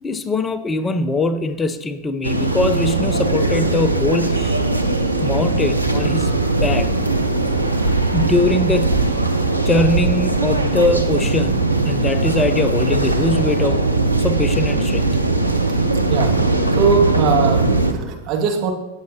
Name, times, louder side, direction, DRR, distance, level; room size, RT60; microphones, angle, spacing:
voice 1, 0.0-4.6 5.2-6.4 6.6-6.9 8.1-9.1 9.7-13.8 14.2-15.1, left 2 dB, 15° left, 11 dB, 0.6 m, -21 dB
sound 1, 2.2-17.9, right 2 dB, 90° right, 0.9 m, -19 dB
voice 2, 16.8-18.7, right 5 dB, 35° right, 1 dB, 1.9 m, -20 dB
17.5 x 7.7 x 2.8 m, 1.0 s
figure-of-eight pair, 90°, 0 cm